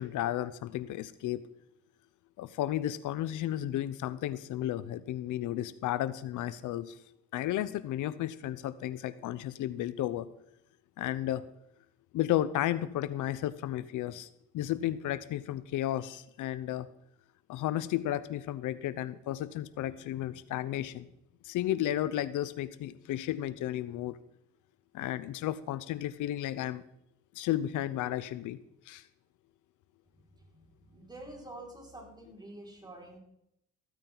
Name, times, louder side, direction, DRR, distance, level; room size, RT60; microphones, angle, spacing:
voice 1, 0.0-1.4 2.4-7.0 7.3-10.3 11.0-11.4 12.1-14.3 14.5-16.9 17.5-21.1 21.4-24.2 24.9-26.8 27.4-28.6 28.9-29.0, left 13 dB, 85° left, 15 dB, 0.7 m, -33 dB
voice 2, 30.1-33.2, right 1 dB, 15° right, -1 dB, 5.4 m, -48 dB
15.0 x 13.5 x 3.9 m, 0.78 s
cardioid pair, 90°, 30 cm